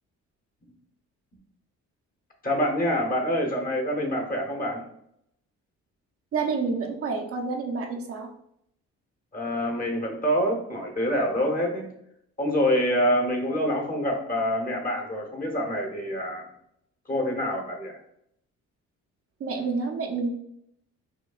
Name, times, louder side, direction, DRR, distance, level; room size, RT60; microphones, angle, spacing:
voice 1, 2.4-4.8 9.3-11.9 12.4-16.5 17.1-18.0, equal, 30° left, 2 dB, 1.0 m, -26 dB
voice 2, 6.3-8.3 19.4-20.3, right 4 dB, 50° right, 2 dB, 0.6 m, -28 dB
4.9 x 2.3 x 2.4 m, 0.73 s
cardioid pair, 90°, 30 cm